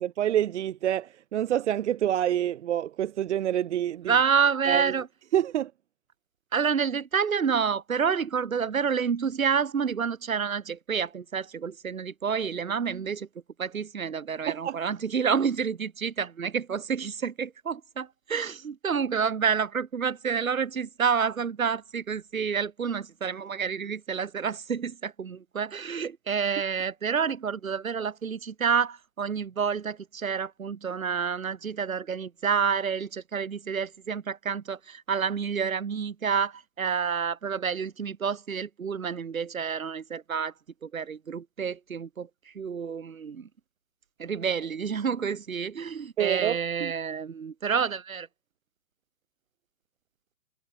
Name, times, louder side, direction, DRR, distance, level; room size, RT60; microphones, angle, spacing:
voice 1, 0.0-4.1 4.7-4.9 5.3-5.7 14.5-14.8 46.2-46.9, right 11 dB, 55° right, 0.5 m, -27 dB
voice 2, 4.1-5.1 6.5-13.3 13.6-40.5 40.8-43.5 44.2-48.3, right 6 dB, 75° right, 1.9 m, -29 dB
figure-of-eight pair, 125°, 42 cm